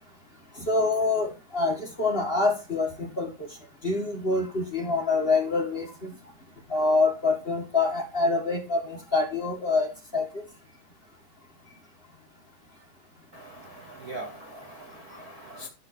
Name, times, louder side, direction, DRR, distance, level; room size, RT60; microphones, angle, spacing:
voice 1, 0.6-3.5 3.8-6.2 6.7-10.4, left 3 dB, 20° left, 1 dB, 1.7 m, -26 dB
voice 2, 13.3-15.7, right 1 dB, 85° right, 3 dB, 0.8 m, -42 dB
11.5 x 4.1 x 6.7 m, 0.29 s
omnidirectional pair, 3.8 m